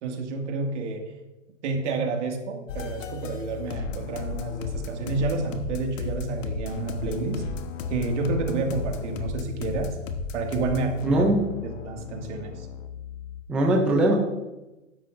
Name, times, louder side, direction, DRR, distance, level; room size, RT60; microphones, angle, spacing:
voice 1, 0.0-1.0 1.6-7.4 7.9-10.0 10.3-11.3 11.8-12.7, right 3 dB, 60° right, 2 dB, 2.1 m, -29 dB
sound 1, 2.7-13.4, left 4 dB, 70° left, 1.2 m, -35 dB
voice 2, 11.0-11.4 13.5-14.2, right 1 dB, 5° right, 1 dB, 0.3 m, -20 dB
12.0 x 10.0 x 2.5 m, 1.0 s
hypercardioid pair, 140°, 39 cm